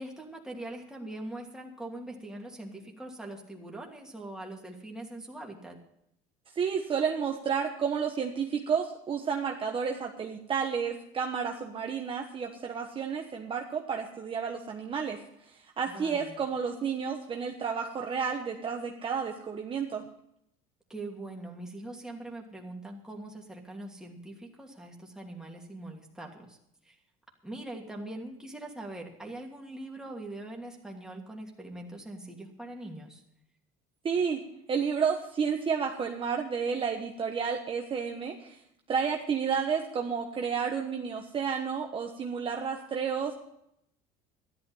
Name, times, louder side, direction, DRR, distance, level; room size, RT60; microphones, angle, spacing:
voice 1, 0.0-5.8 15.9-16.4 20.9-26.6 26.8-27.0 27.4-33.2, right 1 dB, 5° right, -1 dB, 2.7 m, -42 dB
voice 2, 6.5-15.2 15.4-20.0 34.0-34.4 34.7-38.6 38.9-43.3, right 6 dB, 30° right, 2 dB, 1.2 m, -31 dB
13.0 x 11.5 x 5.6 m, 0.76 s
cardioid pair, 125°, 18 cm